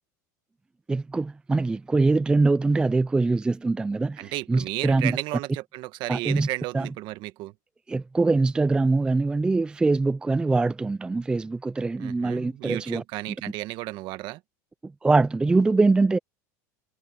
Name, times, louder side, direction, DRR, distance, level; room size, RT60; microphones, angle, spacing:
voice 1, 0.9-5.2 6.1-6.5 6.7-6.9 7.9-13.0 14.8-16.2, right 3 dB, 10° right, 0.4 m, -23 dB
voice 2, 4.2-7.5 12.0-14.4, right 18 dB, 50° right, 1.3 m, -33 dB
supercardioid pair, 125°, 10 cm